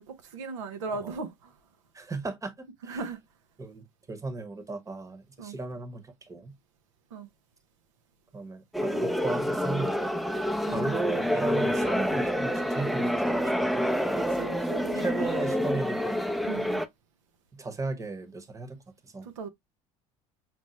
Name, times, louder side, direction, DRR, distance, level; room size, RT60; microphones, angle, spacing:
voice 1, 0.0-1.5 2.8-3.2 5.4-5.6 7.1-7.3 10.7-10.9 14.1-15.4 16.4-16.8 19.2-19.5, right 4 dB, 85° right, 0.6 m, -38 dB
voice 2, 1.9-3.0 3.6-6.5 8.3-10.2 10.7-14.4 14.9-16.8 17.5-19.3, right 3 dB, 20° right, 1.0 m, -36 dB
sound 1, 8.7-16.9, equal, ahead, 0.5 m, -28 dB
5.9 x 2.0 x 3.0 m
hypercardioid pair, 70°, 15 cm